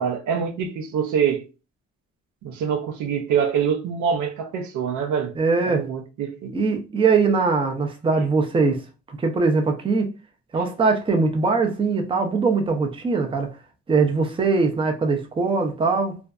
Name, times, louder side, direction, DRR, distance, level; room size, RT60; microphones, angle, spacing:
voice 1, 0.0-1.4 2.4-5.3 5.7-6.5, right 7 dB, 75° right, 0.5 m, -25 dB
voice 2, 5.4-5.9 6.5-8.8 9.1-10.1 10.5-13.6 13.9-16.2, right 4 dB, 20° right, 0.5 m, -21 dB
2.5 x 2.2 x 2.3 m
cardioid pair, 90°, 30 cm